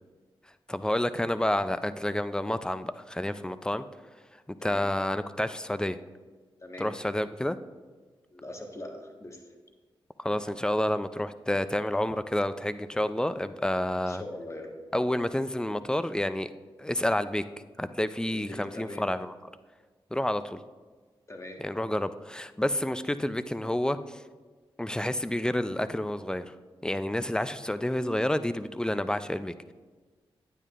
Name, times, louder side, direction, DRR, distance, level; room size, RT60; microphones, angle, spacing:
voice 1, 0.7-3.8 4.5-6.0 6.8-7.6 10.2-14.2 14.9-16.5 16.8-17.4 17.8-19.3 20.1-20.6 21.6-24.2 24.8-26.5 26.8-29.7, left 1 dB, 10° left, 13 dB, 0.5 m, -29 dB
voice 2, 6.6-7.0 8.3-9.4 14.1-14.8 18.3-19.1 21.3-21.6, left 1 dB, 30° left, 2 dB, 1.5 m, -42 dB
9.9 x 9.0 x 2.5 m, 1.4 s
cardioid pair, 45°, 10 cm